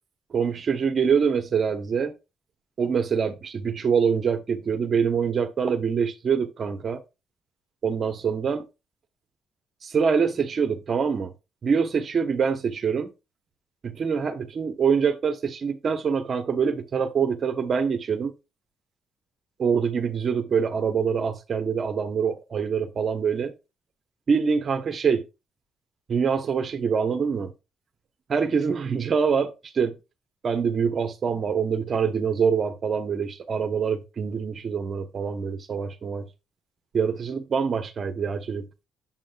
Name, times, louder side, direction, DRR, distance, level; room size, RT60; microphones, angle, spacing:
voice 1, 0.3-2.1 2.8-7.0 7.8-8.6 9.8-11.3 11.6-13.1 13.8-18.3 19.6-23.5 24.3-25.2 26.1-27.5 28.3-30.0 30.4-36.3 36.9-38.9, right 6 dB, 50° right, 1.1 m, -25 dB
7.5 x 7.5 x 2.4 m
cardioid pair, 90°, 0 cm